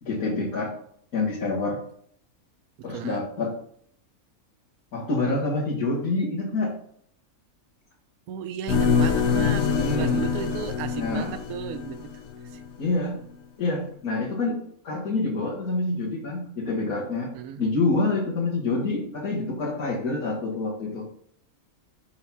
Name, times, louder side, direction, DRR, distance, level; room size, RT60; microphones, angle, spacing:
voice 1, 0.0-0.7 1.1-1.8 2.8-3.5 4.9-6.8 9.8-10.2 11.0-11.3 12.8-13.2 13.6-14.6 14.8-17.3 17.6-21.1, left 3 dB, 85° left, -7 dB, 2.1 m, -27 dB
voice 2, 2.8-3.2 8.3-12.6 17.3-17.7, right 9 dB, 80° right, 12 dB, 1.1 m, -35 dB
sound 1, 8.7-12.7, left 6 dB, 55° left, 1.0 m, -25 dB
5.7 x 3.9 x 5.7 m, 0.65 s
omnidirectional pair, 1.5 m